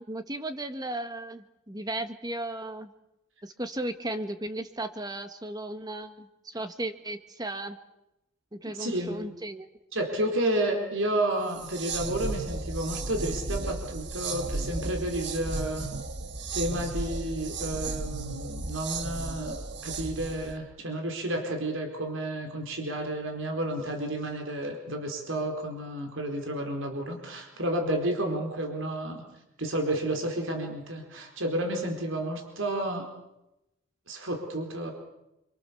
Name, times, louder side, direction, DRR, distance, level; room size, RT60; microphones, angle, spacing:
voice 1, 0.1-2.9 3.4-7.8 8.5-9.7, right 1 dB, 20° right, 8 dB, 1.7 m, -35 dB
voice 2, 8.7-9.3 9.9-15.9 16.5-19.6 19.8-29.2 29.6-33.0 34.1-34.9, right 1 dB, 70° right, 3 dB, 4.6 m, -31 dB
sound 1, 11.5-20.6, right 3 dB, 55° right, 1.7 m, -34 dB
28.0 x 25.5 x 7.1 m, 0.91 s
head